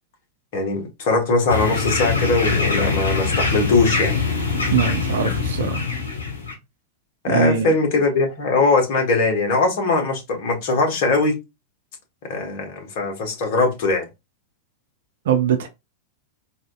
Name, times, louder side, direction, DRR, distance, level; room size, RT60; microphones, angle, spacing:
voice 1, 0.5-4.2 7.2-11.3 12.3-14.1, left 3 dB, 50° left, 1.3 m, -20 dB
sound 1, 1.5-6.5, left 4 dB, 70° left, 0.9 m, -23 dB
voice 2, 4.7-5.8 7.3-7.7 15.3-15.7, right 8 dB, 60° right, 0.6 m, -21 dB
4.1 x 2.6 x 2.3 m
figure-of-eight pair, 90°, 0 cm